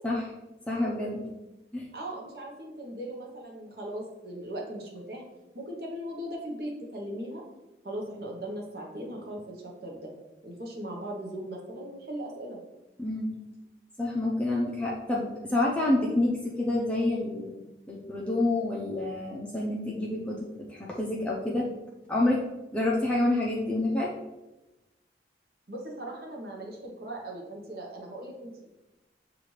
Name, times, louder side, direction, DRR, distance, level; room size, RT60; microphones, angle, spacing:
voice 1, 0.7-1.3 1.7-1.9 13.0-13.3 14.0-17.5 17.9-21.7 22.1-22.4 22.7-24.1, left 2 dB, 5° left, -4 dB, 0.5 m, -28 dB
voice 2, 1.9-5.2 5.5-7.4 7.8-10.1 10.4-12.6 25.7-28.8, right 1 dB, 60° right, -1 dB, 0.8 m, -38 dB
6.8 x 2.5 x 3.1 m, 1.0 s
head